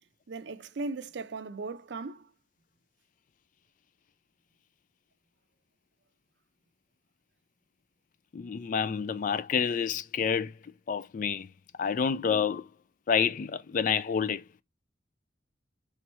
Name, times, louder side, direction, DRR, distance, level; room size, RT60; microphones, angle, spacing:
voice 1, 0.3-2.3, right 3 dB, 65° right, 0.4 m, -37 dB
voice 2, 8.3-10.5 10.9-11.5 11.8-12.6 13.1-14.4, left 6 dB, 45° left, 0.3 m, -28 dB
3.5 x 3.0 x 4.2 m
head